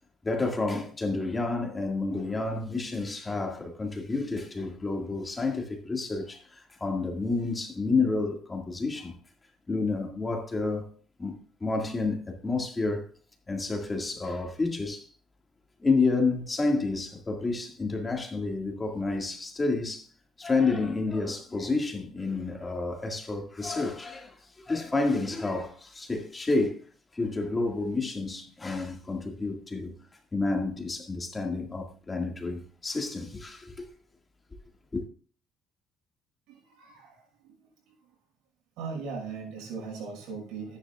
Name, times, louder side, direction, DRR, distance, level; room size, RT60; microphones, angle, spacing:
voice 1, 0.2-9.2 9.7-10.9 11.2-13.1 13.5-15.1 15.8-20.1 20.4-26.8 27.1-30.0 30.3-33.9 34.9-35.0, left 3 dB, 20° left, 1.8 m, -30 dB
voice 2, 36.5-37.6 37.8-37.9 38.8-40.8, right 5 dB, 85° right, 6.1 m, -39 dB
13.5 x 10.5 x 2.3 m
cardioid pair, 130°, 0 cm